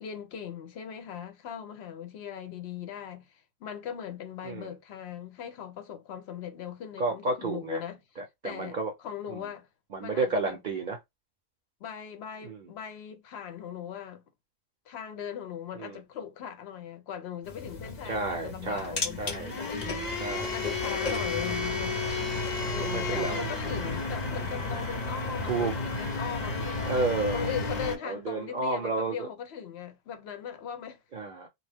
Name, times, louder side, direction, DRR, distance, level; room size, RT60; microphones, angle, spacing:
voice 1, 0.0-8.0 8.4-8.8 9.0-9.7 10.0-10.6 11.8-14.2 14.9-22.0 22.7-26.9 27.3-31.0, left 8 dB, 75° left, 0.9 m, -39 dB
voice 2, 7.0-7.8 8.2-8.9 9.3-9.5 9.9-11.0 12.4-12.7 15.7-16.0 18.0-19.5 20.2-20.5 21.5-21.7 22.8-23.5 25.5-25.7 26.9-27.5 28.0-29.3 31.1-31.5, right 3 dB, 55° right, 0.6 m, -31 dB
sound 1, 17.5-28.0, left 3 dB, 45° left, 0.8 m, -32 dB
2.4 x 2.2 x 3.3 m
omnidirectional pair, 1.1 m